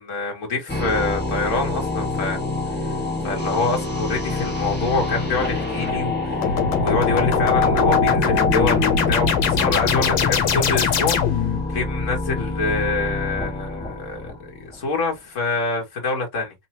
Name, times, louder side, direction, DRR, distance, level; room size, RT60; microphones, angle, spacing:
voice 1, 0.0-2.4 2.7-2.9 3.2-11.2 11.7-16.5, left 3 dB, 40° left, 1.6 m, -26 dB
sound 1, 0.7-14.8, left 3 dB, 5° left, 1.1 m, -25 dB
sound 2, 6.4-11.6, left 7 dB, 70° left, 1.6 m, -22 dB
4.0 x 2.9 x 2.9 m
omnidirectional pair, 2.3 m